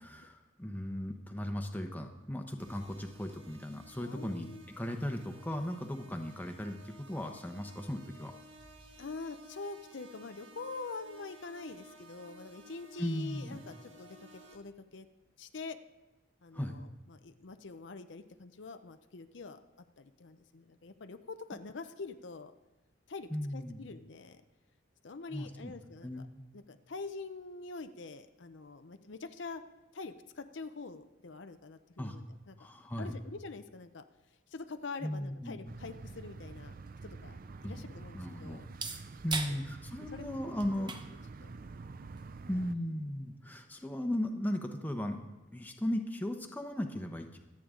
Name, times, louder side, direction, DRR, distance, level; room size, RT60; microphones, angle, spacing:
voice 1, 0.0-8.3 13.0-13.6 16.5-16.8 23.3-23.9 25.3-25.7 26.0-26.4 32.0-32.2 32.6-33.2 35.0-35.6 37.6-37.8 38.1-38.7 39.2-40.9 42.5-47.4, left 1 dB, 10° left, 4 dB, 1.0 m, -37 dB
sound 1, 2.6-14.6, right 1 dB, 65° right, 1.6 m, -56 dB
voice 2, 4.0-4.6 9.0-15.1 15.4-15.8 16.4-19.6 20.0-22.5 23.1-24.4 25.0-26.1 26.5-29.6 29.9-32.6 33.0-34.0 34.5-36.7 37.0-38.6 39.5-39.6 40.1-40.4 40.7-40.9 41.4-41.5, left 3 dB, 65° left, 9 dB, 0.7 m, -45 dB
sound 2, 35.7-42.8, right 3 dB, 45° right, 0.5 m, -48 dB
sound 3, 36.8-44.3, right 4 dB, 25° right, 0.8 m, -46 dB
24.5 x 8.7 x 3.8 m, 1.1 s
head